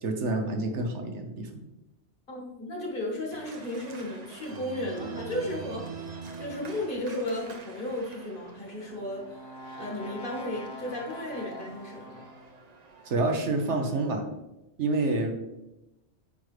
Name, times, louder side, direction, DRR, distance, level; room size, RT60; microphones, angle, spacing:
voice 1, 0.0-1.6 13.0-14.3 14.8-15.3, right 2 dB, 80° right, 4 dB, 1.2 m, -28 dB
voice 2, 2.3-5.9 6.4-12.2, left 1 dB, 50° left, -1 dB, 1.8 m, -34 dB
Organ, 3.3-14.1, right 5 dB, 40° right, 0.8 m, -45 dB
Brass instrument, 8.6-12.7, left 2 dB, 25° left, 0.6 m, -45 dB
8.5 x 5.0 x 3.2 m, 0.95 s
omnidirectional pair, 1.2 m